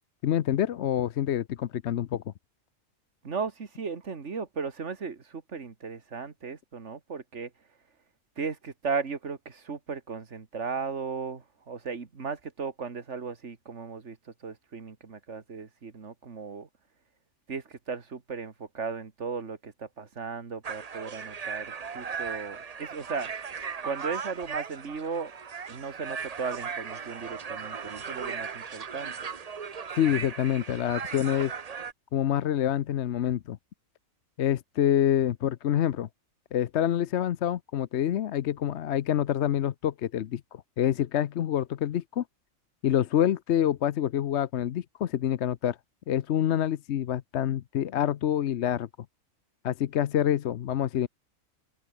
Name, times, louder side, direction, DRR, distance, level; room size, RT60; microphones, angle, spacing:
voice 1, 0.2-2.2 30.0-31.5 32.1-33.6 34.4-36.1 36.5-42.2 42.8-45.8 46.1-48.9 49.6-51.1, left 10 dB, 60° left, 0.9 m, -27 dB
voice 2, 3.2-7.5 8.4-16.7 17.5-23.3 23.8-25.3 25.7-29.1, right 5 dB, 60° right, 2.3 m, -36 dB
sound 1, 20.6-31.9, right 6 dB, 35° right, 0.7 m, -37 dB
open air
omnidirectional pair, 1.4 m